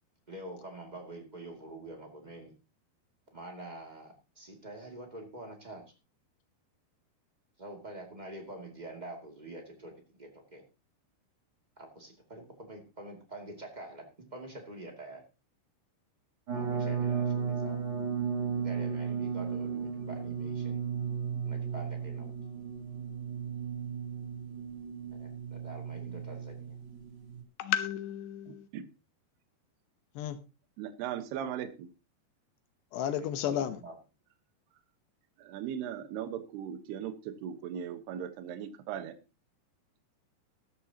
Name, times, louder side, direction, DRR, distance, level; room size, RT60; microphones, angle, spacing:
voice 1, 0.3-2.5 3.3-5.8 7.6-10.6 11.8-15.2 16.5-17.8 18.6-20.8 21.4-22.3 25.1-26.8 33.1-34.0, right 1 dB, 15° right, 2 dB, 1.5 m, -46 dB
sound 1, 16.5-27.4, right 6 dB, 30° right, 3.4 m, -35 dB
voice 2, 27.6-28.7 30.2-30.4 32.9-33.8, left 10 dB, 85° left, 10 dB, 3.1 m, -32 dB
voice 3, 28.5-28.9 30.8-31.9 35.4-39.1, right 9 dB, 75° right, 9 dB, 3.2 m, -38 dB
14.0 x 13.5 x 2.9 m, 0.29 s
omnidirectional pair, 4.8 m